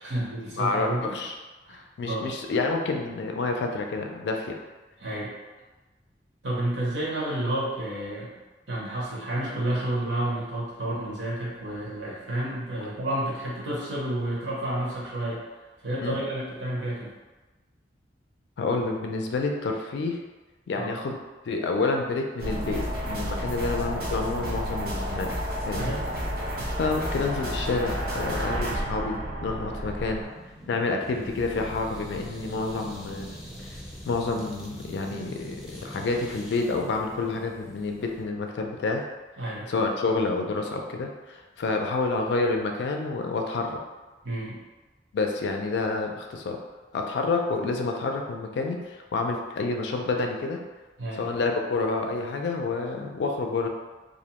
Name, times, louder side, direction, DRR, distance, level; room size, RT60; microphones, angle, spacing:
voice 1, 0.0-1.1 1.7-2.3 5.0-5.3 6.4-8.3 8.7-15.4 15.8-17.1 20.7-21.0 25.8-26.1 39.4-39.7 44.2-44.6 51.0-51.3, right 1 dB, 80° right, -5 dB, 0.9 m, -30 dB
voice 2, 0.6-1.3 1.7-4.6 16.0-16.2 18.6-20.2 20.7-25.3 25.7-26.0 26.8-30.2 30.7-33.3 34.1-39.0 39.7-43.8 45.1-46.6 46.9-50.6 51.1-53.7, left 3 dB, 70° left, 3 dB, 0.3 m, -28 dB
sound 1, 22.4-30.3, equal, 60° right, 0.6 m, -31 dB
sound 2, 30.2-38.2, equal, 5° right, 0.4 m, -42 dB
2.5 x 2.1 x 2.8 m, 1.2 s
head